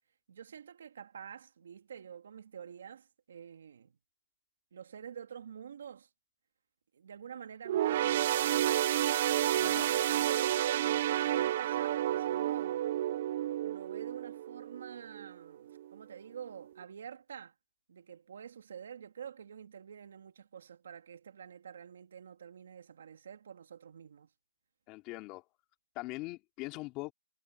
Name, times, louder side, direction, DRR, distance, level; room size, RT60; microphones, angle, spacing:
voice 1, 0.3-3.9 4.7-6.1 6.9-8.7 9.5-12.8 13.6-17.5 17.9-24.3, right 8 dB, 50° right, 2.4 m, -48 dB
sound 1, 7.6-15.3 15.7-15.9 16.8-16.9, right 12 dB, 30° right, 0.4 m, -30 dB
voice 2, 24.9-25.4 26.0-27.1, left 22 dB, 15° left, 4.1 m, -41 dB
hypercardioid pair, 170°, 0 cm